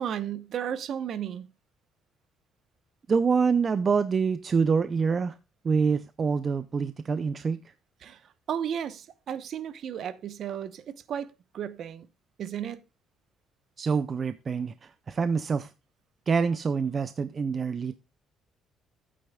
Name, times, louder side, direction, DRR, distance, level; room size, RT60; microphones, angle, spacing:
voice 1, 0.0-1.5 8.0-12.1 12.4-12.8, right 9 dB, 45° right, 0.8 m, -34 dB
voice 2, 3.1-5.4 5.6-7.6 13.8-15.7 16.3-18.0, right 5 dB, 25° right, 0.4 m, -26 dB
15.0 x 8.6 x 2.2 m
cardioid pair, 175°, 0 cm